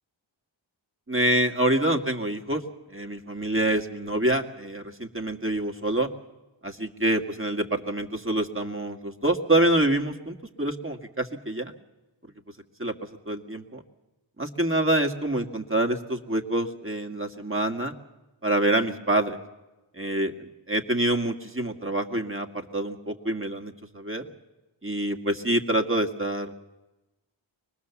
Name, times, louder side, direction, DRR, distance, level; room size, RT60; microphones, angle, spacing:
voice 1, 1.1-2.6 2.9-6.1 6.6-11.7 12.8-12.9 13.3-13.8 14.4-17.9 18.4-19.4 20.0-24.3 24.8-26.6, right 1 dB, 25° right, 4 dB, 2.0 m, -26 dB
24.5 x 20.0 x 7.2 m, 1.0 s
wide cardioid pair, 45°, 46 cm